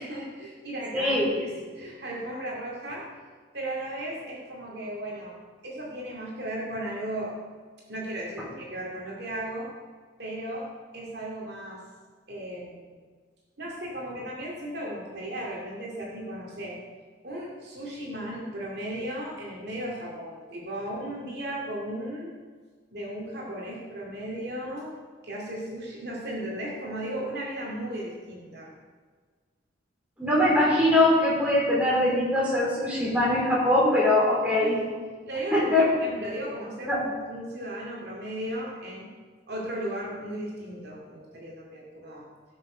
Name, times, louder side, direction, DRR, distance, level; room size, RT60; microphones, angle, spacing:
voice 1, 0.0-3.0 3.5-5.4 5.6-7.3 7.9-9.7 10.2-10.7 10.9-11.8 12.3-13.0 13.6-16.8 17.2-22.3 22.9-24.9 25.2-28.7 34.6-34.7 35.2-39.1 39.5-42.3, right 1 dB, 60° right, -3 dB, 2.4 m, -36 dB
voice 2, 0.9-1.3 30.2-34.8 35.5-35.9 36.9-37.0, left 1 dB, 5° right, -6 dB, 4.0 m, -22 dB
17.0 x 6.6 x 5.0 m, 1.5 s
head